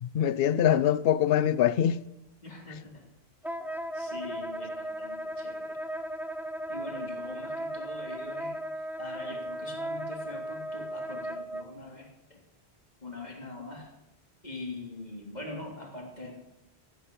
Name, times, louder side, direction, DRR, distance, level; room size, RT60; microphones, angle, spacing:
voice 1, 0.0-2.0, left 10 dB, 65° left, 0.8 m, -24 dB
voice 2, 2.4-3.1 3.9-5.8 6.7-8.6 9.0-12.4 13.0-13.9 14.4-16.3, left 2 dB, 40° left, 3.2 m, -43 dB
Wind instrument woodwind instrument, 3.4-11.6, right 1 dB, ahead, 0.6 m, -36 dB
15.0 x 10.0 x 6.8 m
omnidirectional pair, 1.1 m